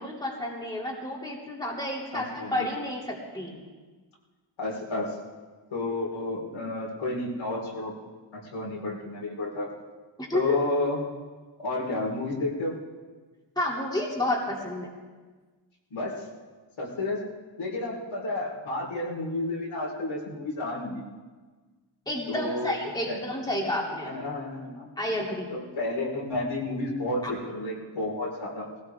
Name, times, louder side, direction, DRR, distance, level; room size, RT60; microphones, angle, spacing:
voice 1, 0.0-3.6 10.2-10.6 13.6-14.9 22.1-24.1 25.0-25.5 27.2-27.3, left 1 dB, 10° left, -3 dB, 2.8 m, -30 dB
voice 2, 2.1-2.7 4.6-5.2 5.7-7.9 8.3-9.7 10.3-11.0 11.6-12.8 15.9-16.2 16.8-17.2 17.6-21.0 22.3-22.7 23.1-23.2 24.0-24.9 25.5-28.7, left 2 dB, 80° left, -3 dB, 4.4 m, -31 dB
19.5 x 17.0 x 3.6 m, 1.4 s
wide cardioid pair, 115°, 47 cm